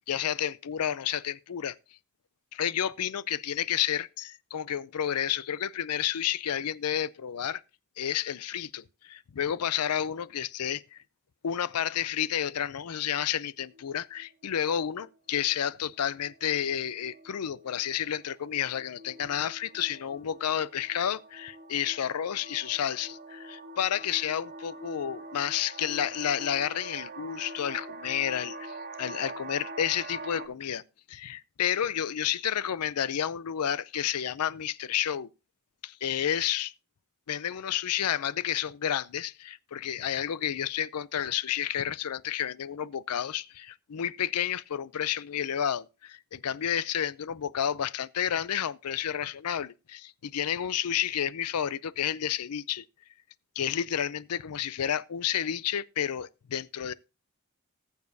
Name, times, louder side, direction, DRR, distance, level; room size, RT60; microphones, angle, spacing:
voice 1, 0.1-1.8 2.5-7.6 8.0-11.0 11.4-30.8 31.1-35.3 35.8-36.7 37.3-52.8 53.6-56.9, left 9 dB, 90° left, 0.5 m, -31 dB
sound 1, 12.1-12.6 13.1-13.3 13.6-13.9 14.2-30.5, right 2 dB, 45° right, 1.3 m, -45 dB
19.5 x 7.1 x 2.7 m
head